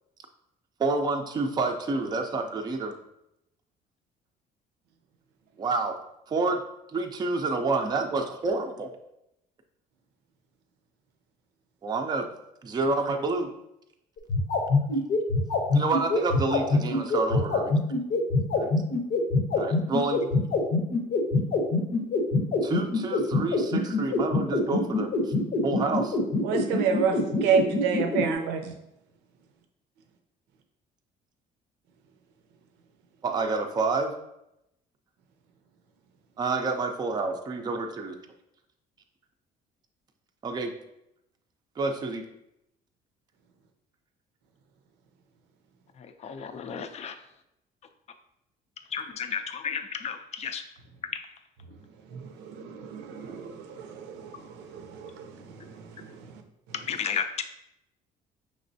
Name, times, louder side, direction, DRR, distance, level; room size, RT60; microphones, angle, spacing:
voice 1, 0.8-3.0 5.6-6.0 6.3-6.6 6.9-8.9 11.8-12.3 12.6-13.5 15.7-17.8 18.6-18.7 19.6-20.3 22.6-25.3 25.6-26.2 33.2-34.1 36.4-38.1 40.4-40.7 41.8-42.3, right 3 dB, 25° right, 4 dB, 0.4 m, -28 dB
sound 1, 14.2-28.2, left 3 dB, 65° left, 0.8 m, -24 dB
voice 2, 26.4-28.7 52.1-55.4, right 6 dB, 90° right, 5 dB, 0.6 m, -29 dB
voice 3, 46.0-47.1 48.9-50.6 56.7-57.4, left 7 dB, 40° left, 8 dB, 0.4 m, -33 dB
5.2 x 3.1 x 2.6 m, 0.83 s
cardioid pair, 110°, 17 cm